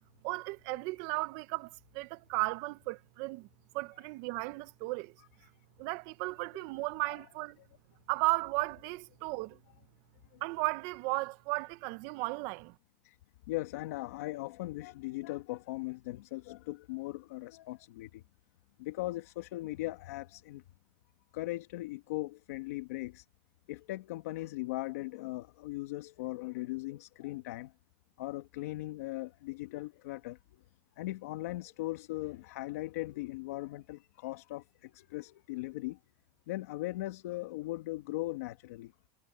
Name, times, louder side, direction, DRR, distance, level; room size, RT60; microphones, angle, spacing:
voice 1, 0.2-3.5 3.7-5.1 5.8-7.6 8.1-9.6 10.4-12.7, right 23 dB, 55° right, 0.7 m, -35 dB
voice 2, 6.5-6.9 13.0-13.2 13.5-18.2 18.8-20.6 21.3-23.2 23.7-27.7 28.2-30.4 31.0-36.0 36.5-38.9, left 18 dB, 80° left, 1.4 m, -39 dB
supercardioid pair, 155°, 8 cm